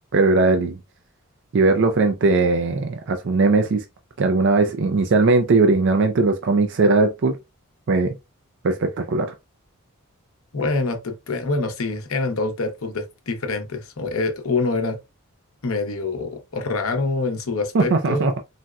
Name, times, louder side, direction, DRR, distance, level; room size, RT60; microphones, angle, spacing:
voice 1, 0.1-0.8 1.5-3.8 4.2-7.4 7.9-8.1 8.6-9.3 17.7-18.4, right 3 dB, 55° right, 0.4 m, -19 dB
voice 2, 10.5-15.0 15.6-18.3, left 3 dB, 70° left, 0.8 m, -25 dB
4.0 x 2.1 x 2.3 m
head